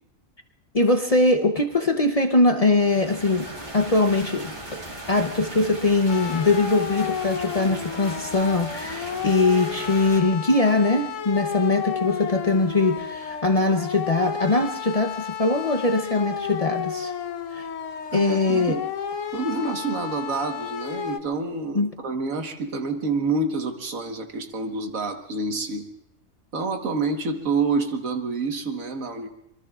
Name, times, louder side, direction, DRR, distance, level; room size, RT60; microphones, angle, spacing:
voice 1, 0.7-3.5 3.7-4.8 5.1-17.1 17.5-17.7 18.1-18.8 21.7-21.9, left 2 dB, 35° left, 5 dB, 0.7 m, -22 dB
sound 1, 2.7-10.2, right 1 dB, 35° right, 2.2 m, -38 dB
sound 2, 6.1-21.2, left 8 dB, 70° left, 1.2 m, -32 dB
voice 2, 18.1-18.8 19.3-25.9 26.5-29.3, right 3 dB, 80° right, 5 dB, 1.8 m, -27 dB
26.0 x 22.5 x 2.4 m, 0.77 s
omnidirectional pair, 1.4 m